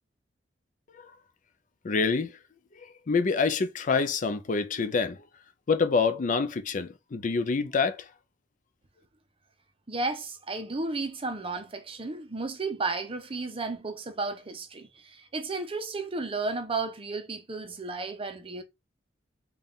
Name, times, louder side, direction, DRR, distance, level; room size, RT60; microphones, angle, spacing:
voice 1, 1.8-2.4 3.1-5.2 5.7-8.1, left 4 dB, 45° left, 0.5 m, -26 dB
voice 2, 9.9-18.6, right 3 dB, 30° right, 0.7 m, -33 dB
4.0 x 2.4 x 3.5 m
head